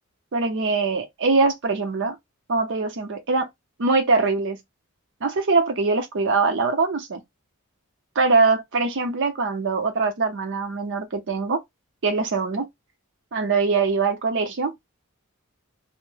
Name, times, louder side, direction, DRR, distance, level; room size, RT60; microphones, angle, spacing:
voice 1, 0.3-2.2 2.5-3.5 3.8-4.6 5.2-7.2 8.2-11.6 12.0-12.7 13.3-14.7, right 4 dB, 60° right, 0.6 m, -22 dB
2.1 x 2.0 x 3.1 m
head